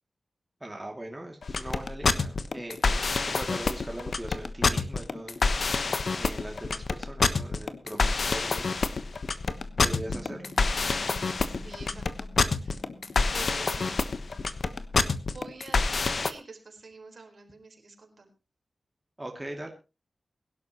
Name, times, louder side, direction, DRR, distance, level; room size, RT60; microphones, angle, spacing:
voice 1, 0.6-5.4 6.2-8.8 9.8-10.5 19.2-19.7, right 1 dB, 15° right, 1 dB, 2.5 m, -40 dB
sound 1, 1.4-16.3, left 4 dB, 65° left, 1.1 m, -27 dB
sound 2, 9.3-15.0, left 1 dB, 85° left, 4.7 m, -50 dB
voice 2, 11.5-12.3 12.6-12.8 13.2-14.0 15.3-18.3, right 4 dB, 65° right, 3 dB, 4.3 m, -47 dB
22.5 x 11.5 x 3.0 m, 0.29 s
wide cardioid pair, 105°, 0 cm